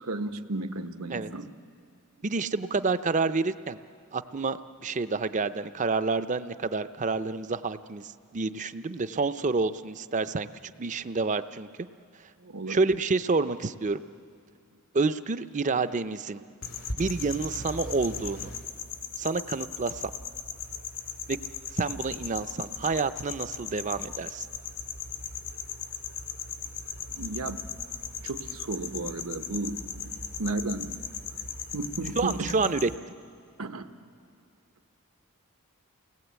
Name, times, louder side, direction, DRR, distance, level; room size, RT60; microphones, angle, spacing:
voice 1, 0.0-1.5 12.4-12.8 27.1-27.6 28.2-31.0 31.7-32.6 33.6-33.9, right 2 dB, 75° right, 8 dB, 1.1 m, -34 dB
voice 2, 2.2-3.8 4.1-11.7 12.7-14.0 14.9-16.4 17.0-18.5 19.2-20.1 21.3-21.4 21.7-24.5 32.2-32.9, right 4 dB, 35° right, 12 dB, 0.6 m, -28 dB
sound 1, 16.6-33.0, left 6 dB, 70° left, 2.2 m, -38 dB
29.5 x 19.0 x 8.2 m, 2.3 s
head